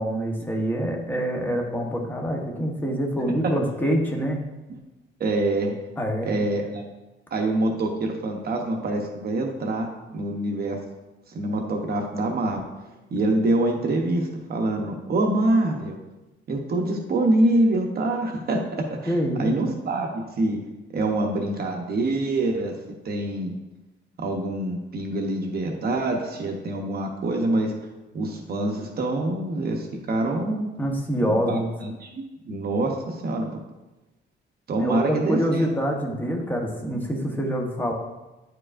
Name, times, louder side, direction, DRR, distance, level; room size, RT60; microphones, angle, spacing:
voice 1, 0.0-4.4 6.0-6.5 19.1-19.5 30.8-31.7 34.8-37.9, equal, 10° left, 0 dB, 1.0 m, -26 dB
voice 2, 5.2-5.8 6.2-6.9 7.3-9.9 10.1-10.8 11.3-12.6 13.1-16.0 16.5-20.6 20.9-22.7 23.0-23.6 24.2-27.7 28.1-30.7 31.2-33.5 34.7-35.7, right 2 dB, 50° right, 2 dB, 0.8 m, -25 dB
9.7 x 4.7 x 2.5 m, 1.0 s
cardioid pair, 135°, 20 cm